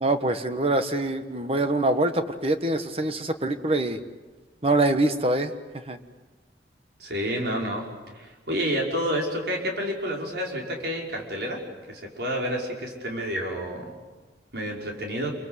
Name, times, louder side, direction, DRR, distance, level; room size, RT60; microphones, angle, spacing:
voice 1, 0.0-4.0 4.6-5.5 5.9-6.0, right 2 dB, 35° right, 8 dB, 1.3 m, -24 dB
voice 2, 7.0-7.9 8.2-11.6 11.9-13.9 14.5-15.3, equal, 70° right, 0 dB, 5.5 m, -29 dB
28.5 x 23.5 x 8.1 m, 1.3 s
head